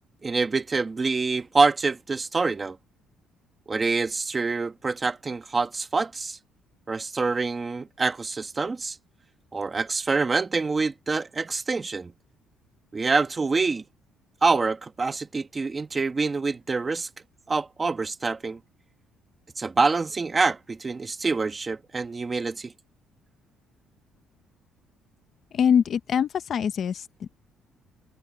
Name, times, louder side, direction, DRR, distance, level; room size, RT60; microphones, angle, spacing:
voice 1, 0.2-2.8 3.7-6.4 6.9-9.0 9.5-12.1 12.9-13.8 14.4-17.1 17.5-18.6 19.6-22.7, right 4 dB, 20° right, 1.6 m, -26 dB
voice 2, 25.5-27.3, left 8 dB, 45° left, 0.7 m, -24 dB
cardioid pair, 140°, 0 cm